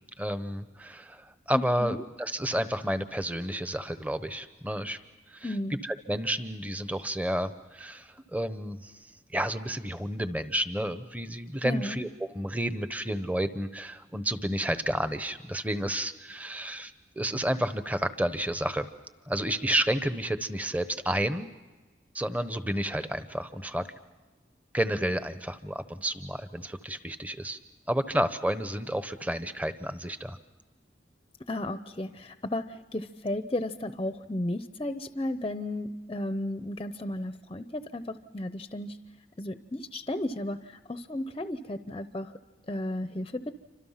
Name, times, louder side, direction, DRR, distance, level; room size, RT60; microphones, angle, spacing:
voice 1, 0.2-5.0 5.3-5.5 5.8-18.9 19.3-21.5 22.1-23.8 24.7-27.6 27.9-30.4, right 1 dB, 10° right, 10 dB, 1.0 m, -31 dB
voice 2, 1.5-2.0 5.4-5.8 11.6-12.0 31.5-39.0 39.4-42.3 42.7-43.5, left 1 dB, 25° left, 10 dB, 0.7 m, -34 dB
29.0 x 25.5 x 5.8 m, 1.2 s
head